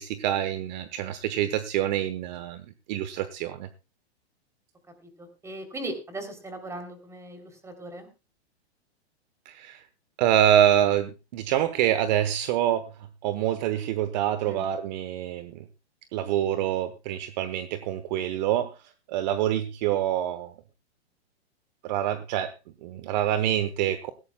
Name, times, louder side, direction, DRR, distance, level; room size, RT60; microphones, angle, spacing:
voice 1, 0.0-2.6 2.9-3.7 9.5-9.8 10.2-12.9 13.2-15.6 16.1-18.7 19.1-20.5 21.8-22.5 22.8-24.1, right 11 dB, 40° right, 12 dB, 1.0 m, -26 dB
voice 2, 5.2-8.1 14.4-14.7, right 1 dB, 10° right, 6 dB, 3.1 m, -38 dB
18.0 x 16.0 x 2.2 m, 0.28 s
hypercardioid pair, 140°, 33 cm